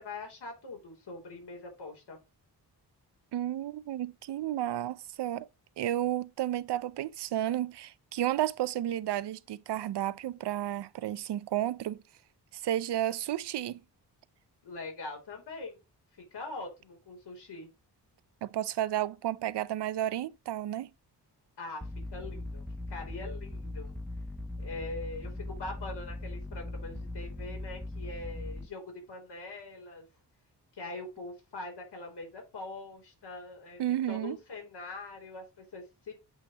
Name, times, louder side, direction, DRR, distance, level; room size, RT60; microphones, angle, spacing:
voice 1, 0.0-2.2 14.6-15.8 16.3-17.7 21.6-22.6 22.9-23.9 24.6-30.0 30.7-36.1, left 3 dB, 75° left, 3.1 m, -43 dB
voice 2, 3.3-5.5 5.8-12.0 12.5-13.8 18.4-20.9 33.8-34.4, right 12 dB, 75° right, 0.5 m, -32 dB
sound 1, 21.8-28.7, left 2 dB, ahead, 0.4 m, -39 dB
8.0 x 2.8 x 4.8 m
wide cardioid pair, 100°, 42 cm